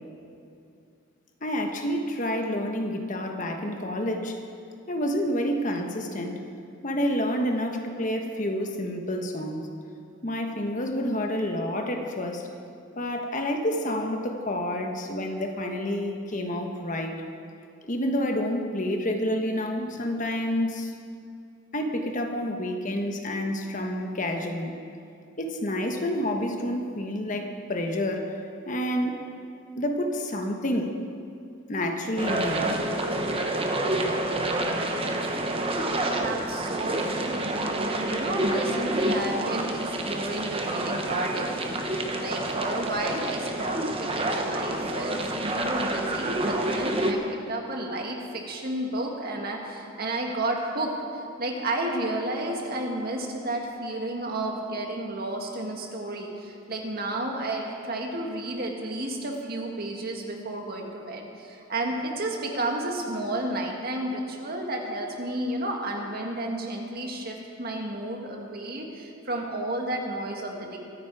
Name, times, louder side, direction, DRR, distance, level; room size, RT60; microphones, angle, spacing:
voice 1, 1.4-4.4 4.9-6.4 6.8-9.7 10.2-12.5 13.0-17.2 17.8-20.9 21.7-24.7 25.4-28.3 28.7-29.2 29.8-31.0 31.7-32.7, left 1 dB, 40° left, 3 dB, 1.2 m, -29 dB
sound 1, 32.2-47.1, right 1 dB, 30° right, 1.0 m, -28 dB
voice 2, 36.2-70.8, right 1 dB, 50° right, 1 dB, 2.0 m, -32 dB
24.0 x 9.4 x 4.8 m, 2.5 s
head